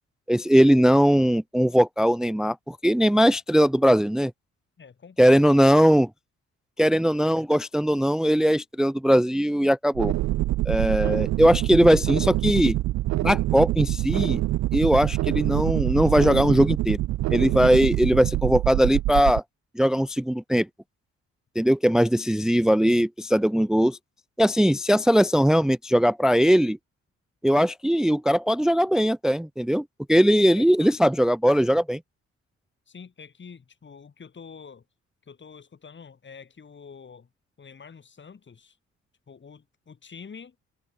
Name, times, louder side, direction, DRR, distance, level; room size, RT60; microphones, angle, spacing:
voice 1, 0.3-4.3 5.2-6.1 6.8-10.1 10.7-12.8 13.2-14.4 14.7-17.0 17.3-19.4 19.8-20.7 21.6-24.0 24.4-26.8 27.4-32.0, equal, ahead, 0.5 m, -20 dB
voice 2, 4.8-5.7 11.0-11.2 22.3-22.4 30.6-30.9 32.9-34.8 35.2-37.3 37.6-38.8 39.3-40.5, left 6 dB, 40° left, 4.6 m, -46 dB
sound 1, 9.9-19.4, right 16 dB, 65° right, 0.5 m, -25 dB
cardioid pair, 90°, 30 cm